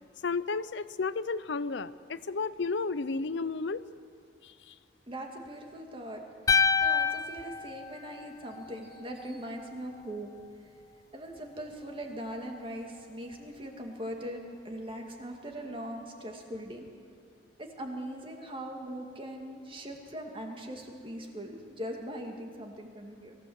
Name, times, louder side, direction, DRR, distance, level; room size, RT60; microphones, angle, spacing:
voice 1, 0.2-3.8 4.4-4.8, left 4 dB, 70° left, 15 dB, 0.6 m, -32 dB
voice 2, 5.1-6.2 6.8-10.3 11.1-16.9 17.6-23.4, equal, 30° right, 2 dB, 2.4 m, -40 dB
sound 1, 6.5-8.7, left 5 dB, 20° left, 0.4 m, -27 dB
22.5 x 15.5 x 8.1 m, 2.3 s
head